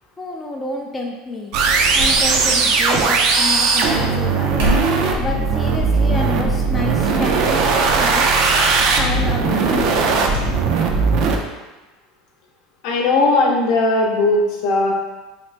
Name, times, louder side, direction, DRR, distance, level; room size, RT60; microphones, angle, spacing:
voice 1, 0.2-1.5 1.9-4.6 5.2-7.7 8.0-8.3 9.0-10.4, left 2 dB, 15° left, -1 dB, 0.3 m, -29 dB
sound 1, 1.5-11.4, right 4 dB, 55° right, 0.4 m, -18 dB
sound 2, 2.0-2.8 4.4-5.1 5.9-6.3 6.7-6.8 7.8-8.0 8.3-8.4 10.3-10.5 10.8-10.9, equal, 90° right, 1.5 m, -25 dB
voice 2, 12.8-14.9, left 2 dB, 70° left, -1 dB, 0.7 m, -17 dB
2.8 x 2.5 x 3.2 m, 1.1 s
supercardioid pair, 135°, 0 cm